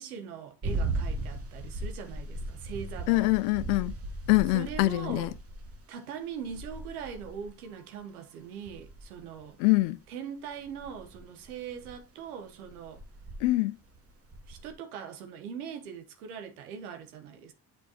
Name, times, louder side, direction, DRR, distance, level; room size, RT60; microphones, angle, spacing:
voice 1, 0.0-3.3 4.5-5.4 5.9-9.6 10.1-13.0 14.5-17.5, right 7 dB, 85° right, 1.1 m, -41 dB
sound 1, 0.6-5.8 6.4-7.5 8.7-9.7 10.6-12.0 12.6-13.5 13.9-14.7, right 2 dB, 35° right, 1.4 m, -37 dB
voice 2, 3.1-3.9 4.3-5.3 9.6-10.0 13.4-13.7, left 21 dB, 75° left, 0.5 m, -24 dB
8.2 x 4.5 x 2.8 m
hypercardioid pair, 45°, 43 cm